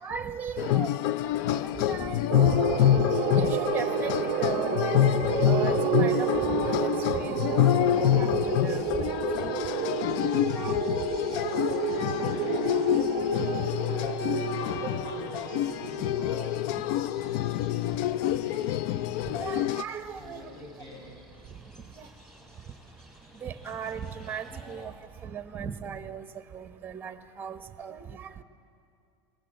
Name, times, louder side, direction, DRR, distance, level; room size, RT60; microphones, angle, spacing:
voice 1, 0.0-3.0 3.4-9.6 10.5-10.8 11.8-12.0 13.0-13.6 16.3-16.4 19.2-20.5 22.0-22.1 23.3-24.9 25.2-26.3 26.5-28.4, right 7 dB, 15° right, 10 dB, 0.9 m, -38 dB
sound 1, 0.6-19.8, left 12 dB, 60° left, 0.4 m, -27 dB
sound 2, 2.3-16.9, right 17 dB, 40° right, 0.4 m, -31 dB
sound 3, 7.4-24.9, right 1 dB, ahead, 4.7 m, -54 dB
voice 2, 11.9-12.8 13.3-13.6 13.9-19.6 20.1-21.2, left 1 dB, 40° left, -2 dB, 6.3 m, -46 dB
25.5 x 18.5 x 7.4 m, 2.6 s
supercardioid pair, 155°, 12 cm